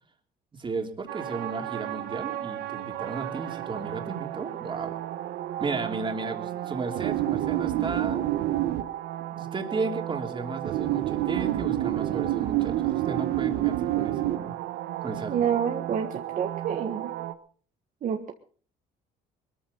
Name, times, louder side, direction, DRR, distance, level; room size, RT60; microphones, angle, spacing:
voice 1, 0.6-5.0 5.6-8.3 9.3-14.5 15.0-15.5, right 4 dB, 30° right, 3 dB, 3.2 m, -34 dB
sound 1, 1.1-17.3, right 13 dB, 80° right, 1.2 m, -30 dB
voice 2, 15.3-17.1 18.0-18.3, right 8 dB, 50° right, 4 dB, 1.6 m, -28 dB
21.0 x 14.0 x 4.0 m, 0.43 s
cardioid pair, 110°, 17 cm